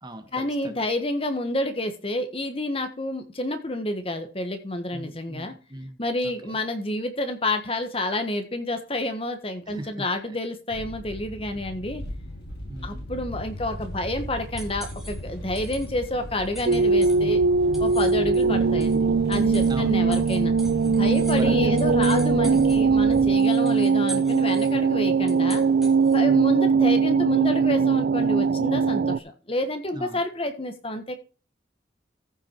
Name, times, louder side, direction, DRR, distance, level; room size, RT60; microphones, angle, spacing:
voice 1, 0.3-5.6 6.0-12.0 12.8-17.4 17.8-20.5 21.0-25.6 26.1-31.2, left 1 dB, 30° left, 7 dB, 1.4 m, -29 dB
voice 2, 4.9-6.6 9.7-10.4 12.7-13.0 19.7-20.3 21.1-21.7 26.3-26.6 29.9-30.2, right 1 dB, 25° right, 7 dB, 1.2 m, -39 dB
sound 1, 10.7-23.3, equal, 65° left, 5.2 m, -38 dB
sound 2, 13.5-26.4, right 2 dB, ahead, 2.0 m, -45 dB
sound 3, 16.7-29.2, right 5 dB, 65° right, 0.4 m, -21 dB
14.5 x 5.8 x 4.5 m, 0.35 s
head